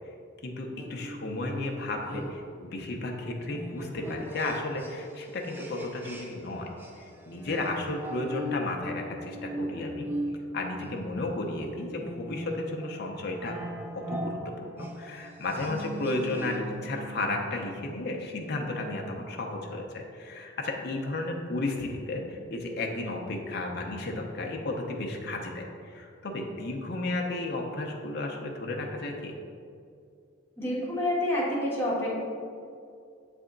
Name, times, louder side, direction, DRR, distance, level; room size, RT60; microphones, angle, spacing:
voice 1, 0.4-6.7 7.0-10.1 10.5-13.6 14.1-29.3, left 2 dB, 55° left, 1 dB, 0.6 m, -33 dB
sound 1, 0.8-6.5 6.8-16.8, equal, 10° right, 0.5 m, -39 dB
sound 2, 15.7-19.0, right 4 dB, 65° right, 1.0 m, -44 dB
voice 2, 30.6-32.2, left 1 dB, 10° left, -7 dB, 1.4 m, -28 dB
7.2 x 3.4 x 3.8 m, 2.4 s
head